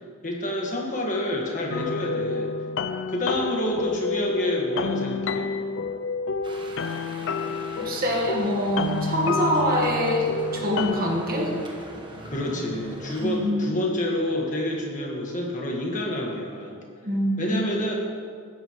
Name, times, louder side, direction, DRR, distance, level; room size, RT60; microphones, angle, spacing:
voice 1, 0.2-2.5 3.1-5.5 12.2-16.8 17.4-17.9, left 1 dB, 35° left, -1 dB, 1.6 m, -28 dB
sound 1, 1.7-11.1, left 4 dB, 55° left, 0.4 m, -29 dB
sound 2, 6.4-13.4, right 1 dB, 20° right, 1.2 m, -41 dB
voice 2, 7.8-11.5 13.2-13.7 17.0-17.6, equal, 40° right, 0 dB, 1.5 m, -25 dB
14.5 x 10.5 x 3.1 m, 2.1 s
head